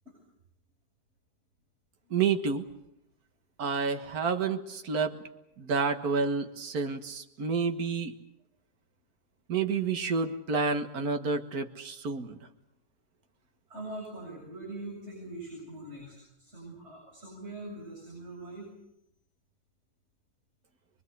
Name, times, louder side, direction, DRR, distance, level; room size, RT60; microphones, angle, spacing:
voice 1, 2.1-2.6 3.6-5.2 5.6-8.1 9.5-12.4, right 5 dB, 65° right, 7 dB, 2.0 m, -29 dB
voice 2, 13.7-18.7, right 2 dB, 40° right, -2 dB, 7.8 m, -42 dB
24.5 x 23.0 x 8.1 m, 0.78 s
omnidirectional pair, 1.7 m